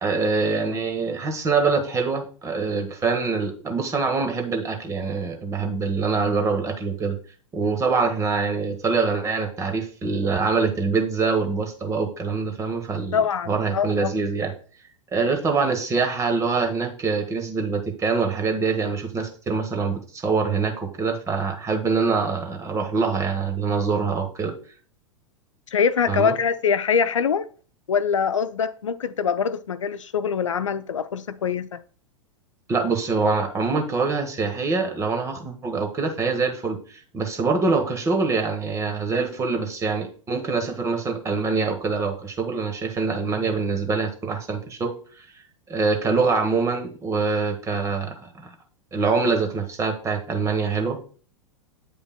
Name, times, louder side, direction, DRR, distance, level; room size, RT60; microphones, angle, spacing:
voice 1, 0.0-7.2 7.5-13.2 13.5-14.5 15.1-24.5 26.1-26.4 32.7-44.9 45.7-48.5 48.9-51.0, right 4 dB, 20° right, 1.2 m, -24 dB
voice 2, 13.1-14.1 25.7-27.5 27.9-31.8, left 6 dB, 75° left, 0.4 m, -23 dB
8.7 x 5.2 x 2.2 m
figure-of-eight pair, 95°, 16 cm